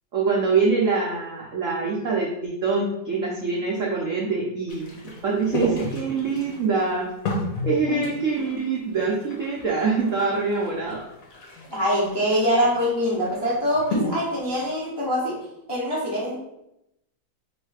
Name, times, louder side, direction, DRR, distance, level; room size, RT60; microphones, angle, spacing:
voice 1, 0.1-7.1 7.7-11.0, right 4 dB, 75° right, -3 dB, 0.7 m, -24 dB
sound 1, 4.7-14.7, left 1 dB, 55° left, 1.2 m, -33 dB
voice 2, 11.7-16.4, equal, 35° left, -6 dB, 0.4 m, -24 dB
3.2 x 3.1 x 4.7 m, 0.84 s
omnidirectional pair, 2.1 m